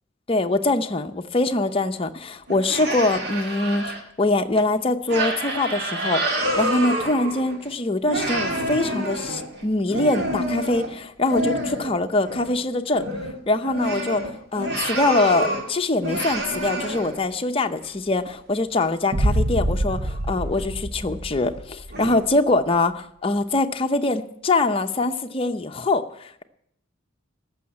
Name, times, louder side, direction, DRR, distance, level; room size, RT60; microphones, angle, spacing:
voice 1, 0.3-6.2 6.6-13.1 13.5-26.0, left 2 dB, 30° left, 6 dB, 0.7 m, -23 dB
sound 1, 2.5-4.0 4.5-4.6 5.1-7.7 8.1-12.0 12.2-12.6 12.9-15.7 16.0-17.3 17.8-17.9 19.3-19.4 19.9-20.2 20.6-20.7 21.3-21.4 21.9-22.2, right 1 dB, 55° right, 2.2 m, -28 dB
Boom, 19.1-22.1, right 1 dB, 35° right, 0.6 m, -25 dB
14.5 x 6.4 x 9.7 m, 0.72 s
head